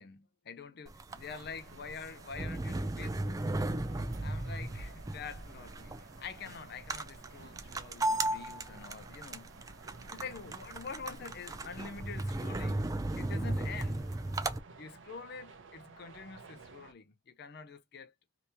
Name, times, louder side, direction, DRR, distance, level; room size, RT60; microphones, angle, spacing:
voice 1, 0.0-3.4 4.2-9.5 10.1-12.9 13.2-14.1 14.8-18.1, left 5 dB, 55° left, 0.5 m, -46 dB
sound 1, 0.9-14.6, right 2 dB, 20° right, 0.3 m, -36 dB
sound 2, 1.1-16.9, right 4 dB, 70° right, 0.6 m, -55 dB
2.8 x 2.8 x 3.3 m
head